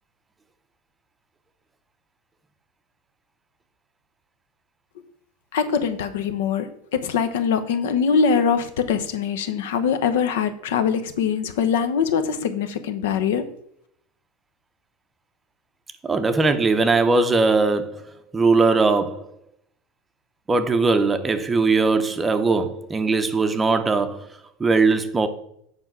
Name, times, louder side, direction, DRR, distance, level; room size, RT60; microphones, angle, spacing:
voice 1, 5.5-6.7 6.9-13.4, left 6 dB, 85° left, 1.0 m, -22 dB
voice 2, 16.0-18.1 18.3-19.3 20.5-24.3 24.6-25.3, right 3 dB, 10° right, 0.6 m, -20 dB
7.9 x 4.9 x 6.1 m
supercardioid pair, 160°, 0 cm